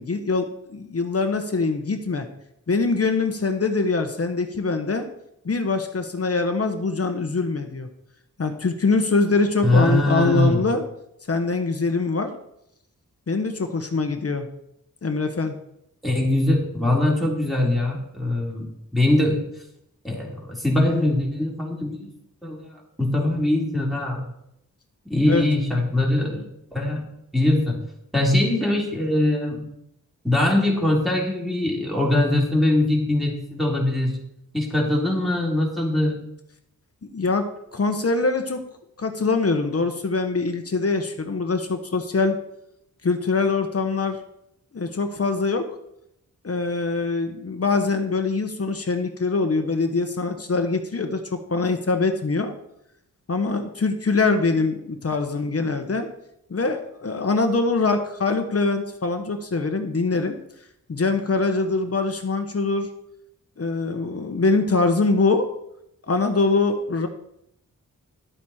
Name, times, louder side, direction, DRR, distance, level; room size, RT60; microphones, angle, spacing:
voice 1, 0.0-2.3 2.7-5.1 5.4-7.9 8.4-10.8 11.3-12.3 13.3-14.5 15.0-15.6 25.3-25.4 37.1-38.6 39.0-42.4 43.0-44.2 44.7-45.7 46.4-52.5 53.3-56.1 56.5-60.4 60.9-62.9 63.6-65.5 66.1-67.1, left 3 dB, 45° left, 6 dB, 1.3 m, -23 dB
voice 2, 9.6-10.7 16.0-18.7 18.9-19.5 20.0-22.1 22.4-22.7 23.0-24.3 25.1-26.5 26.7-27.1 27.3-27.8 28.1-29.7 30.2-34.2 34.5-36.2, left 1 dB, ahead, -3 dB, 3.6 m, -22 dB
11.5 x 8.5 x 4.4 m, 0.77 s
wide cardioid pair, 75°, 33 cm